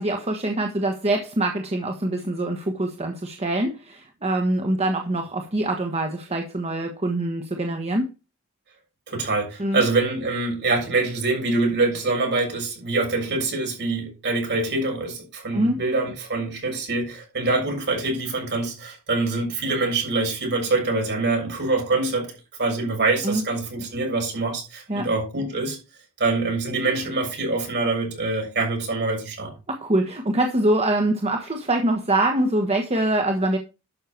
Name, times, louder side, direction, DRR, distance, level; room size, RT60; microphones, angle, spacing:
voice 1, 0.0-8.1 9.6-9.8 15.5-15.8 23.2-23.4 24.9-25.1 29.7-33.6, right 1 dB, 30° right, 1.3 m, -24 dB
voice 2, 9.1-22.3 22.6-25.8 26.2-29.5, right 3 dB, 50° right, 6.8 m, -25 dB
12.0 x 6.5 x 4.5 m
head